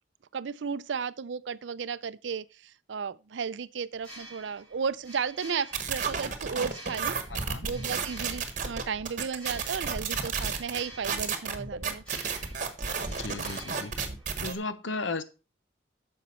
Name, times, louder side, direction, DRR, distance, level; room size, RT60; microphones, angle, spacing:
voice 1, 0.3-7.2 7.6-12.0, right 6 dB, 70° right, 0.5 m, -34 dB
sound 1, 3.9-14.7, right 1 dB, 5° left, 4.1 m, -50 dB
sound 2, 5.7-14.5, right 5 dB, 40° right, 1.3 m, -32 dB
voice 2, 7.3-7.7 13.2-13.9 14.4-15.2, left 3 dB, 75° left, 0.9 m, -35 dB
9.3 x 6.6 x 4.3 m
head